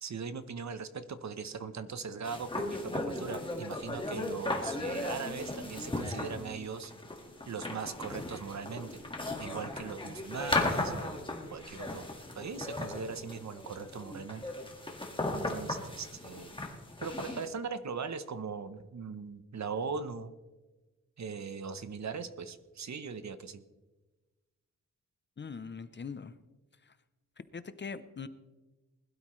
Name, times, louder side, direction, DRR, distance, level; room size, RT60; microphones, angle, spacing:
voice 1, 0.0-6.9 7.5-9.0 9.4-12.0 12.3-14.4 15.3-16.6 17.0-20.3 21.2-23.6, right 5 dB, 60° right, 11 dB, 0.9 m, -40 dB
sound 1, 2.2-17.5, left 2 dB, 15° left, 1.7 m, -37 dB
voice 2, 25.4-26.4 26.8-26.9 27.5-28.3, left 5 dB, 35° left, 13 dB, 0.6 m, -42 dB
20.5 x 12.5 x 3.2 m, 1.2 s
wide cardioid pair, 160°, 31 cm